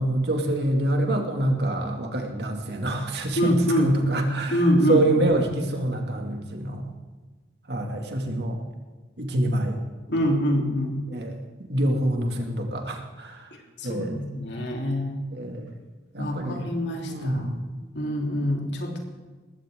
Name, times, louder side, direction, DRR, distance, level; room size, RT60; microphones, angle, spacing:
voice 1, 0.0-4.6 4.9-6.8 7.7-8.6 9.2-9.8 11.1-11.3 11.7-13.5 13.8-14.1 15.3-15.7 16.1-16.7 17.1-17.6, right 1 dB, 65° right, 2 dB, 2.5 m, -26 dB
voice 2, 3.4-4.0 4.5-5.2 10.1-11.0 13.8-15.2 16.2-17.5 17.9-19.0, equal, 75° left, 0 dB, 3.6 m, -25 dB
20.0 x 16.5 x 3.8 m, 1.3 s
head